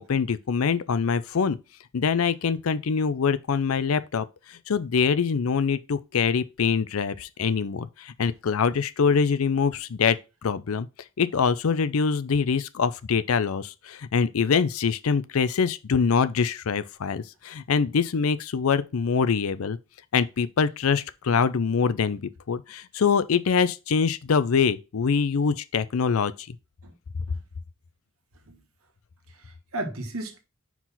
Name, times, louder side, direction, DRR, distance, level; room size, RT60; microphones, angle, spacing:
voice 1, 0.0-1.6 1.9-10.2 10.4-10.9 11.2-19.8 20.1-22.2 22.5-26.6, left 5 dB, 80° left, 0.5 m, -24 dB
voice 2, 29.3-30.4, right 1 dB, 85° right, 1.3 m, -35 dB
4.7 x 3.9 x 5.6 m
head